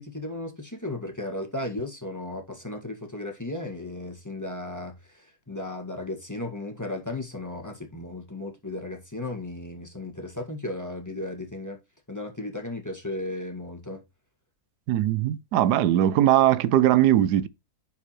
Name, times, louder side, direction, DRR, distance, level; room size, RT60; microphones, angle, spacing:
voice 1, 0.0-11.8 12.1-14.0, left 2 dB, 10° left, 1.6 m, -35 dB
voice 2, 14.9-17.5, right 12 dB, 90° right, 1.2 m, -20 dB
11.0 x 4.7 x 3.0 m
omnidirectional pair, 1.7 m